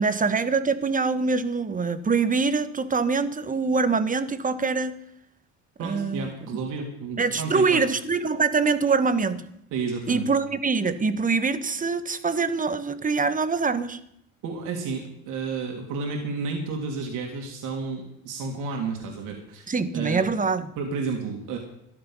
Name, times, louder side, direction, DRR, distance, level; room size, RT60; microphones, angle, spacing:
voice 1, 0.0-5.0 5.8-6.3 7.2-9.4 10.1-14.0 19.7-20.7, right 4 dB, 25° right, 12 dB, 1.3 m, -24 dB
voice 2, 5.8-7.8 9.7-10.2 14.4-19.7 19.9-20.3 20.8-21.6, right 4 dB, 70° right, 2 dB, 3.0 m, -31 dB
14.0 x 11.5 x 5.7 m, 0.77 s
supercardioid pair, 80°, 33 cm